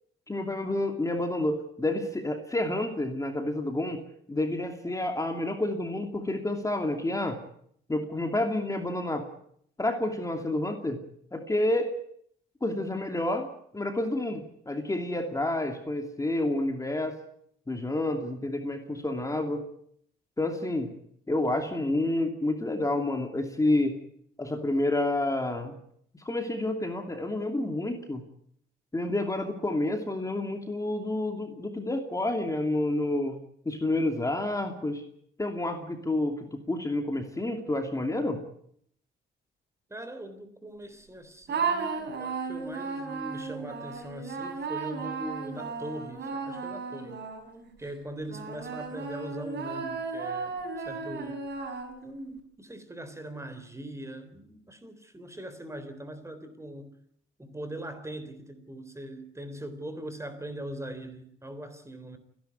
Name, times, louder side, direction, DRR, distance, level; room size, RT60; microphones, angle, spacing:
voice 1, 0.3-4.0 4.3-7.4 7.9-9.3 9.8-11.0 11.3-11.9 12.6-13.5 13.7-14.4 14.7-17.2 17.7-19.7 20.4-20.9 21.3-24.0 24.4-25.8 26.2-28.2 28.9-33.4 33.6-35.0 35.4-38.4, left 1 dB, 15° left, 2.8 m, -29 dB
voice 2, 39.9-47.2 47.8-51.5 52.0-56.9 57.4-62.2, right 1 dB, 15° right, 3.7 m, -41 dB
sound 1, 41.5-47.7 48.3-52.2, right 5 dB, 60° right, 6.0 m, -35 dB
29.0 x 11.5 x 9.4 m
cardioid pair, 90°, 20 cm